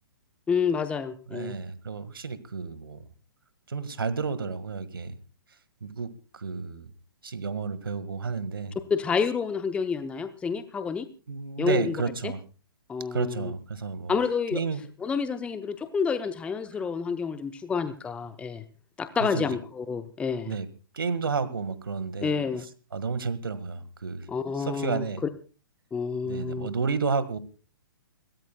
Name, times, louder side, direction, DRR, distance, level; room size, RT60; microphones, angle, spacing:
voice 1, 0.5-1.6 8.9-11.1 11.6-11.9 12.2-12.3 12.9-13.5 14.1-14.6 15.0-18.6 19.0-20.5 22.2-22.6 24.3-25.0 25.9-26.7, left 5 dB, 10° left, 10 dB, 0.8 m, -29 dB
voice 2, 1.3-3.0 3.7-5.2 5.8-6.9 7.2-8.8 11.3-12.4 13.1-14.1 14.5-14.8 19.2-19.5 20.5-20.7 20.9-22.3 22.9-24.3 24.6-25.2 26.2-27.4, right 5 dB, 65° right, 14 dB, 1.8 m, -31 dB
29.0 x 13.5 x 2.3 m, 0.35 s
figure-of-eight pair, 120°, 13 cm